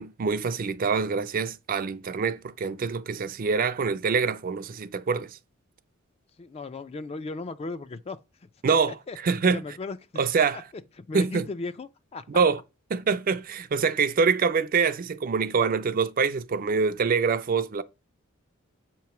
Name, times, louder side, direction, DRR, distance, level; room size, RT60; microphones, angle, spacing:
voice 1, 0.0-5.4 8.6-8.9 9.2-9.6 10.2-10.6 11.1-11.5 12.3-12.6 12.9-17.8, right 5 dB, 45° right, 0.4 m, -25 dB
voice 2, 6.4-8.2 8.7-9.2 9.5-10.0 10.5-12.4, left 3 dB, 30° left, 0.3 m, -36 dB
7.3 x 3.1 x 5.8 m
head